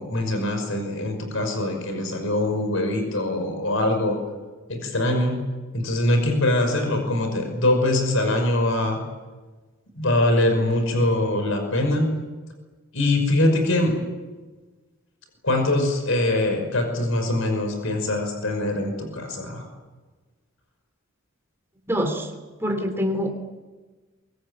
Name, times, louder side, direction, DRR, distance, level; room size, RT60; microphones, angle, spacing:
voice 1, 0.0-4.2 4.7-5.4 5.7-9.0 9.9-12.1 12.9-13.9 15.4-19.7, left 1 dB, 70° left, 6 dB, 5.8 m, -23 dB
voice 2, 21.9-22.3 22.6-23.3, equal, 10° right, 4 dB, 3.4 m, -25 dB
24.0 x 23.0 x 8.9 m, 1.3 s
head